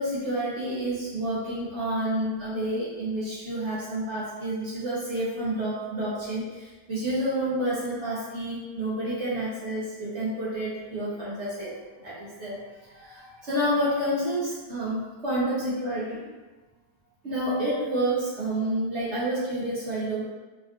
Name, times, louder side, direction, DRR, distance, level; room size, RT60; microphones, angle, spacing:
voice 1, 0.0-16.3 17.2-20.3, right 1 dB, 60° right, -8 dB, 0.8 m, -29 dB
3.4 x 2.4 x 2.2 m, 1.3 s
omnidirectional pair, 1.8 m